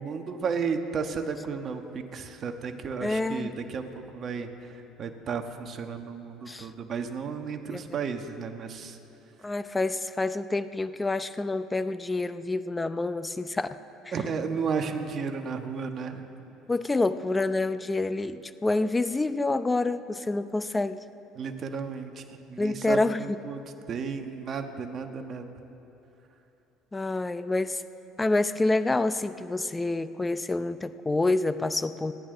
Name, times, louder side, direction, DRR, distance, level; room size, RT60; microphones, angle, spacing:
voice 1, 0.0-3.8 4.1-4.5 5.0-9.0 14.1-16.2 21.3-23.6 23.9-25.5, right 5 dB, 45° right, 5 dB, 1.4 m, -33 dB
voice 2, 3.0-3.5 6.5-6.7 7.7-7.8 9.4-13.7 14.0-14.1 16.7-21.0 22.6-23.4 26.9-27.8 28.2-32.1, left 2 dB, 15° left, 12 dB, 0.6 m, -27 dB
28.0 x 11.0 x 3.9 m, 2.9 s
supercardioid pair, 95°, 0 cm